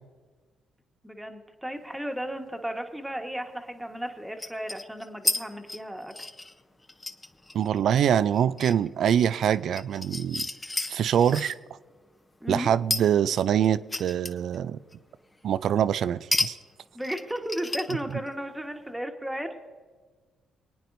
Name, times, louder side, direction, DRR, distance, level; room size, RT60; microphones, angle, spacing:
voice 1, 1.0-6.1 12.4-12.7 16.9-19.5, equal, 5° right, 1.4 m, -34 dB
sound 1, 2.3-2.4 4.4-5.4 5.7-11.6 12.9-14.6 14.9-15.0 16.3-16.5 16.8-18.3, left 2 dB, 20° left, 0.8 m, -32 dB
voice 2, 7.5-10.5 10.9-11.5 12.5-14.8 15.4-16.5, right 9 dB, 70° right, 0.4 m, -24 dB
25.0 x 9.1 x 2.6 m
supercardioid pair, 65°, 0 cm